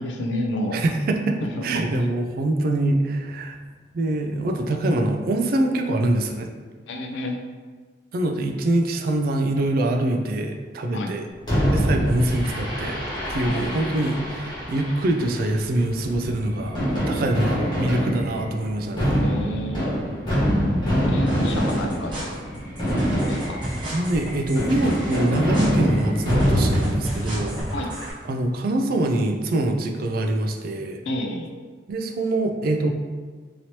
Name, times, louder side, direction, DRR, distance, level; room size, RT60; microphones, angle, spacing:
voice 1, 0.0-0.8 1.4-1.8 6.9-7.4 10.9-11.2 13.5-14.2 19.2-20.1 21.0-22.3 23.2-23.6 27.7-27.9 31.1-31.5, left 1 dB, 75° left, 3 dB, 0.4 m, -30 dB
voice 2, 0.7-3.6 3.9-6.5 8.1-11.3 11.7-13.0 13.3-16.8 17.1-19.3 23.0-23.2 23.8-27.5 28.3-31.0 31.9-32.9, right 1 dB, 50° right, 3 dB, 0.3 m, -24 dB
Fireworks, 11.5-27.6, equal, 25° left, 1.2 m, -25 dB
sound 1, 21.3-28.1, equal, 25° right, 1.2 m, -34 dB
3.0 x 2.8 x 2.8 m, 1.5 s
head